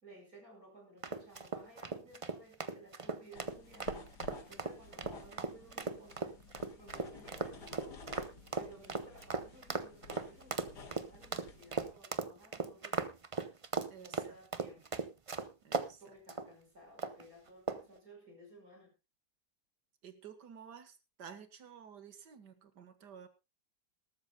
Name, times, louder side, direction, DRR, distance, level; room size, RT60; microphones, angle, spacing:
voice 1, 0.0-4.0 4.5-6.4 6.7-8.1 8.5-13.3 14.0-15.1 16.0-19.0, right 1 dB, 60° right, 2 dB, 5.7 m, -57 dB
sound 1, 1.0-15.9 16.3-16.5 17.0-17.3 17.7-18.0, right 4 dB, 35° right, 0.5 m, -38 dB
sound 2, 3.3-11.9, left 3 dB, 85° left, 2.4 m, -53 dB
voice 2, 13.9-14.4 15.6-16.0 20.0-23.3, right 7 dB, 90° right, 11 dB, 2.0 m, -52 dB
20.0 x 13.0 x 2.3 m, 0.24 s
omnidirectional pair, 1.7 m